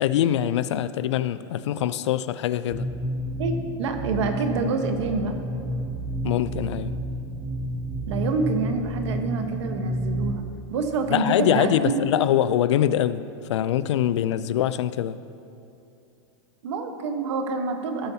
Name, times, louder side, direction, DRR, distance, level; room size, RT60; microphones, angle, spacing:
voice 1, 0.0-2.9 6.2-7.0 11.1-13.2 13.5-15.2, left 11 dB, 85° left, 15 dB, 0.4 m, -23 dB
sound 1, 2.7-10.3, equal, 10° right, 0.6 m, -30 dB
voice 2, 3.4-5.3 8.1-10.4 10.7-12.0 16.6-18.1, right 4 dB, 80° right, 5 dB, 1.1 m, -27 dB
16.0 x 6.9 x 2.8 m, 2.7 s
supercardioid pair, 140°, 15 cm